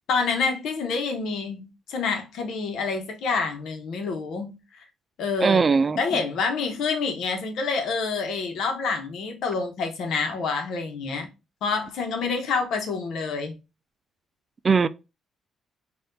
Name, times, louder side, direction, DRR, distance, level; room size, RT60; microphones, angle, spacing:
voice 1, 0.1-4.6 5.2-5.6 6.0-11.3 11.6-13.5, left 4 dB, 75° left, 1.0 m, -27 dB
voice 2, 5.4-6.0 14.6-14.9, right 5 dB, 35° right, 0.3 m, -20 dB
4.2 x 2.5 x 3.8 m
cardioid pair, 90°, 0 cm